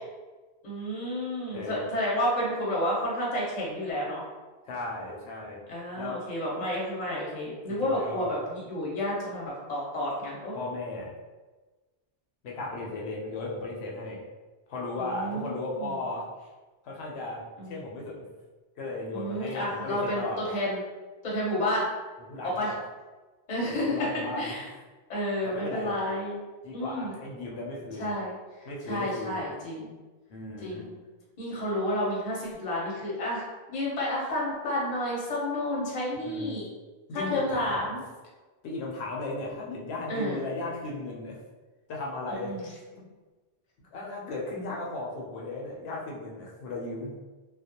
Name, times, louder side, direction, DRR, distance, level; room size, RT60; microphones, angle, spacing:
voice 1, 0.6-4.2 5.7-10.6 15.0-15.9 17.6-17.8 19.1-20.8 21.2-21.9 22.4-22.7 23.5-24.0 24.4-24.6 25.1-26.4 26.7-27.1 28.0-28.3 28.8-29.9 30.6-31.0 31.4-36.7 37.1-38.0 40.1-40.4 42.3-42.7, left 1 dB, 45° left, -5 dB, 0.7 m, -31 dB
voice 2, 1.5-1.9 4.7-5.6 5.9-6.2 7.7-8.3 10.5-11.1 12.4-14.2 14.7-16.3 16.8-18.3 18.8-20.4 22.3-22.8 23.7-24.5 25.4-25.9 26.6-28.1 28.6-29.5 30.3-30.9 36.2-36.6 37.1-37.9 38.6-41.4 41.9-42.6 42.9-43.1 43.9-47.2, left 2 dB, 75° left, -2 dB, 0.8 m, -36 dB
2.3 x 2.0 x 2.8 m, 1.3 s
omnidirectional pair, 1.1 m